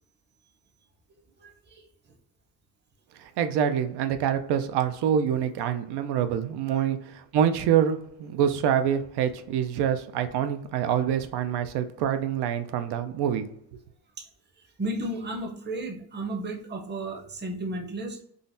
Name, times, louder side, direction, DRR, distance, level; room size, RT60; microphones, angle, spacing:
voice 1, 1.4-1.9 6.7-6.9 14.2-14.3 14.6-18.2, right 1 dB, 25° right, 1 dB, 0.6 m, -34 dB
voice 2, 3.2-13.5, right 9 dB, 85° right, 9 dB, 0.5 m, -26 dB
3.8 x 2.1 x 2.5 m, 0.66 s
cardioid pair, 120°, 39 cm